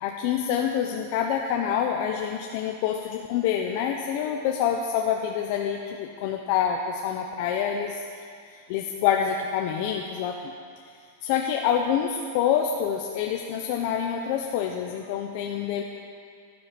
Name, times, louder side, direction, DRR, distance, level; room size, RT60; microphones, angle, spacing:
voice 1, 0.0-8.0 8.7-10.5 11.2-15.8, left 8 dB, 55° left, 2 dB, 0.9 m, -26 dB
12.0 x 9.9 x 6.2 m, 2.2 s
supercardioid pair, 135°, 0 cm